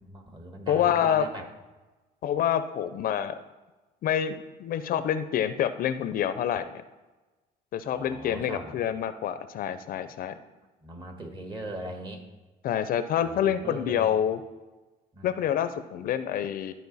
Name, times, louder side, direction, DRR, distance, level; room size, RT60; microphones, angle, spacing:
voice 1, 0.0-1.5 7.8-8.7 10.8-12.2 13.2-14.2 15.1-15.3, right 1 dB, 25° right, 3 dB, 1.5 m, -40 dB
voice 2, 0.7-1.3 2.2-3.4 4.0-6.8 7.7-10.3 12.6-14.4 15.2-16.7, left 9 dB, 60° left, 12 dB, 0.5 m, -27 dB
13.0 x 4.4 x 4.0 m, 1.2 s
cardioid pair, 110°, 17 cm